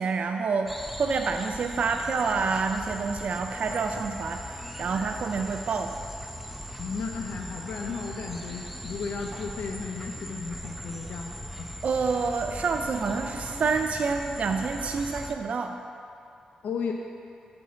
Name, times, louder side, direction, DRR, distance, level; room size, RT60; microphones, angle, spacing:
voice 1, 0.0-6.0 11.8-15.8, right 4 dB, 60° right, 5 dB, 0.4 m, -28 dB
sound 1, 0.7-15.3, equal, 5° right, 0.6 m, -39 dB
voice 2, 6.8-11.7 16.6-16.9, left 5 dB, 80° left, 2 dB, 0.5 m, -34 dB
8.3 x 4.4 x 6.1 m, 2.5 s
cardioid pair, 80°, 3 cm